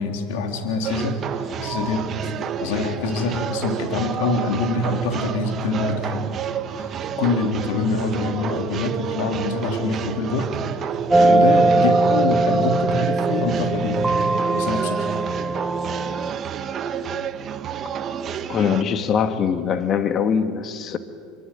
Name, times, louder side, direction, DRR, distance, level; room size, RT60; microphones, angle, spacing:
voice 1, 0.0-6.2 6.8-14.1 14.5-15.1, left 3 dB, 75° left, 4 dB, 3.5 m, -25 dB
sound 1, 0.8-18.8, right 8 dB, 40° right, 1.5 m, -30 dB
sound 2, 11.1-16.3, right 2 dB, 10° right, 0.6 m, -20 dB
voice 2, 18.5-21.0, left 7 dB, 40° left, 9 dB, 1.9 m, -22 dB
25.5 x 24.5 x 9.2 m, 2.1 s
supercardioid pair, 105°, 0 cm